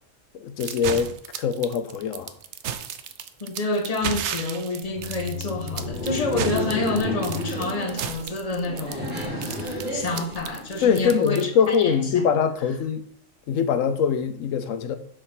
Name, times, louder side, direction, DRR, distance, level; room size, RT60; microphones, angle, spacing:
voice 1, 0.4-2.3 10.8-13.0 13.5-15.0, left 7 dB, 85° left, 1.0 m, -23 dB
sound 1, 0.6-11.8, right 9 dB, 65° right, 0.9 m, -33 dB
voice 2, 3.4-12.2, left 2 dB, 30° left, 1.2 m, -28 dB
Laughter, 4.8-11.1, left 1 dB, 5° right, 2.7 m, -32 dB
6.5 x 4.9 x 5.9 m
omnidirectional pair, 1.3 m